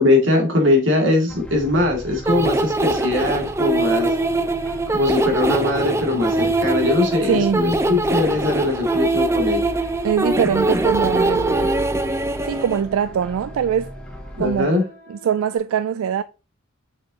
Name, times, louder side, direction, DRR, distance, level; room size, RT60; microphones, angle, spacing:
voice 1, 0.0-4.1 4.9-9.7 14.3-14.9, left 2 dB, 60° right, 2.4 m, -20 dB
sound 1, 1.3-14.6, equal, 5° left, 0.8 m, -36 dB
sound 2, 2.3-12.8, right 2 dB, 15° right, 0.4 m, -22 dB
voice 2, 7.2-7.7 10.0-11.8 12.4-13.9 14.4-14.7 15.1-16.2, right 8 dB, 85° right, 0.3 m, -22 dB
sound 3, 8.1-15.6, left 1 dB, 50° left, 2.3 m, -48 dB
6.6 x 6.2 x 2.9 m
head